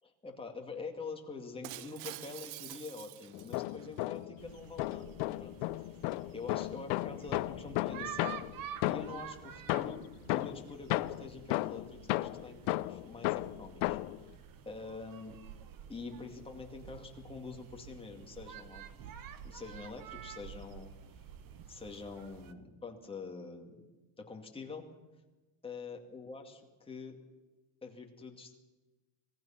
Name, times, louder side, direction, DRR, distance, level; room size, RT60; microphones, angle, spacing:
voice 1, 0.0-6.0 6.3-8.3 8.8-10.0 10.3-14.3 14.7-15.4 15.9-18.8 19.4-20.9 21.7-23.9 24.2-24.9 25.6-27.2 27.8-28.6, left 4 dB, 10° left, 1 dB, 2.4 m, -46 dB
Shatter, 1.6-4.0, right 17 dB, 85° right, 0.9 m, -47 dB
sound 1, 3.3-4.4 4.8-9.3 9.7-14.2, left 19 dB, 70° left, 0.8 m, -34 dB
sound 2, 4.4-22.5, right 9 dB, 45° right, 1.4 m, -49 dB
25.5 x 18.0 x 5.9 m, 1.2 s
cardioid pair, 155°, 49 cm